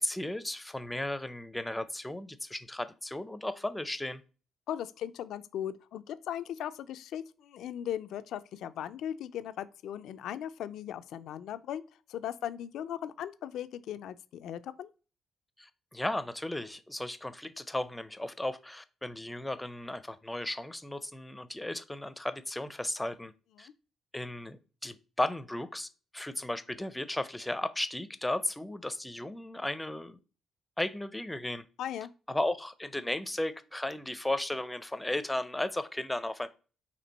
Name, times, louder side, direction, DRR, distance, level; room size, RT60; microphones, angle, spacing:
voice 1, 0.0-4.2 15.6-23.3 23.6-23.7 24.1-25.9 26.1-30.2 30.8-31.6 32.3-36.5, left 1 dB, 10° left, 0.5 m, -35 dB
voice 2, 4.7-11.8 12.1-14.9 23.6-23.7 31.8-32.1, left 10 dB, 80° left, 0.3 m, -38 dB
4.4 x 2.9 x 4.0 m
cardioid pair, 90°, 0 cm